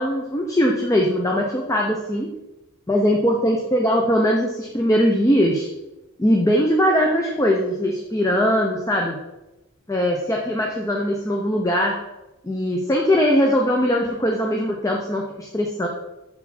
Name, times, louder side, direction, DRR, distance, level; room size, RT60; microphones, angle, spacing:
voice 1, 0.0-2.3 2.9-5.7 6.2-9.2 9.9-12.0 12.4-15.9, equal, 15° left, 0 dB, 0.5 m, -20 dB
6.7 x 4.3 x 4.1 m, 0.97 s
head